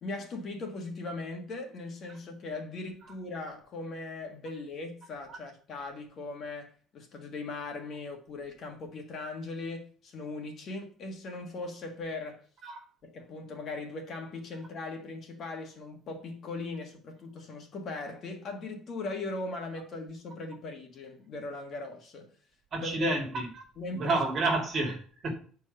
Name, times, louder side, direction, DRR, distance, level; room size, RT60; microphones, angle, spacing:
voice 1, 0.0-12.4 13.0-22.3 22.7-23.2 23.8-24.2, left 3 dB, 40° left, 1.6 m, -39 dB
voice 2, 22.7-23.5 23.9-25.3, right 2 dB, 35° right, 2.4 m, -29 dB
9.2 x 4.7 x 5.5 m
cardioid pair, 170°, 0 cm